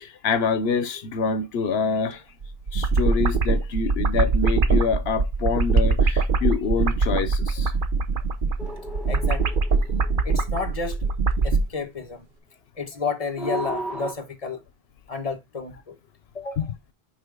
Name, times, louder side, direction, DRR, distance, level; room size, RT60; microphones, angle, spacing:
voice 1, 0.0-2.2 2.7-7.7 16.6-16.7, left 5 dB, 80° left, 1.0 m, -26 dB
sound 1, 2.4-11.7, right 4 dB, 60° right, 0.9 m, -22 dB
sound 2, 8.6-11.1 13.4-14.1, right 2 dB, ahead, 1.5 m, -35 dB
voice 2, 9.1-9.6 10.2-11.1 11.4-12.2 12.8-14.6 15.1-16.0 16.3-16.7, left 4 dB, 35° left, 1.2 m, -31 dB
6.3 x 5.0 x 3.7 m
omnidirectional pair, 1.0 m